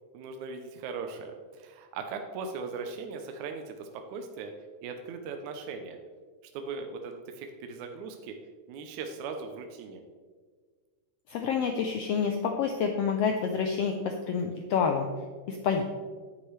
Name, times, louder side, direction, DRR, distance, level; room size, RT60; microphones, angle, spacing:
voice 1, 0.1-4.5 4.8-6.0 6.5-8.4 8.7-10.0, right 5 dB, 75° right, 5 dB, 2.0 m, -39 dB
voice 2, 11.3-15.1 15.5-15.8, left 6 dB, 80° left, 3 dB, 1.4 m, -28 dB
9.6 x 9.3 x 3.2 m, 1.5 s
omnidirectional pair, 3.5 m